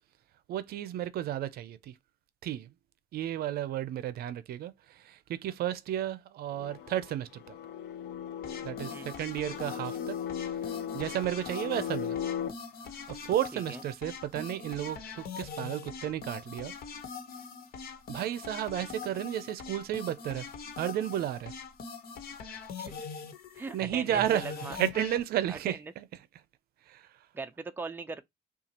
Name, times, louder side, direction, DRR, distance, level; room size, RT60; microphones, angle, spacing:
voice 1, 0.5-2.0 2.4-2.7 3.1-7.6 8.6-10.2 10.4-10.6 10.9-12.2 13.1-16.7 18.1-20.5 20.8-21.5 23.7-26.0 26.9-27.2, right 11 dB, 65° right, 0.6 m, -33 dB
sound 1, 6.5-12.5, left 9 dB, 80° left, 0.7 m, -37 dB
sound 2, 8.4-25.2, left 5 dB, 65° left, 1.2 m, -43 dB
voice 2, 23.6-24.8 25.5-25.8 27.3-28.2, right 4 dB, 10° right, 0.5 m, -39 dB
5.5 x 2.4 x 2.9 m
cardioid pair, 110°, 17 cm